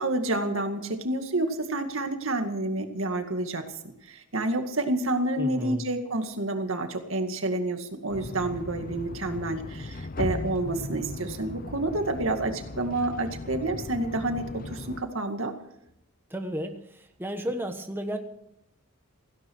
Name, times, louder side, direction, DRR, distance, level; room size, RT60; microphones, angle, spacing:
voice 1, 0.0-15.5, right 2 dB, 65° right, 6 dB, 2.1 m, -29 dB
voice 2, 5.4-5.8 16.3-18.2, equal, 10° right, 5 dB, 1.2 m, -33 dB
sound 1, 8.1-15.0, left 2 dB, 40° left, 0.7 m, -37 dB
17.5 x 16.5 x 4.7 m, 0.78 s
head